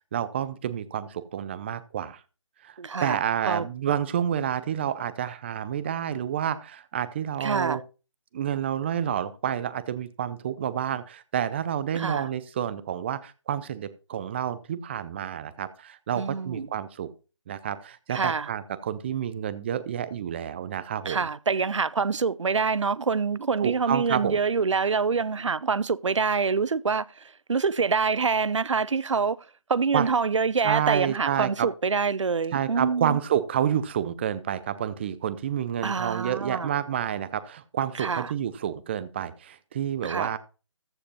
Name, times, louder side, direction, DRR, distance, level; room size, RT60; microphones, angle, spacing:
voice 1, 0.1-2.2 2.6-7.8 8.3-17.1 17.5-21.2 23.6-24.4 29.9-30.1 30.6-31.7 32.5-40.4, right 9 dB, 20° right, 0.6 m, -29 dB
voice 2, 2.8-3.2 3.5-3.7 7.4-7.8 11.9-12.3 16.2-16.7 18.1-18.5 21.0-29.4 29.7-33.2 35.8-36.7 38.0-38.3 40.0-40.4, right 5 dB, 75° right, 0.6 m, -26 dB
14.0 x 5.1 x 5.5 m
figure-of-eight pair, 155°, 16 cm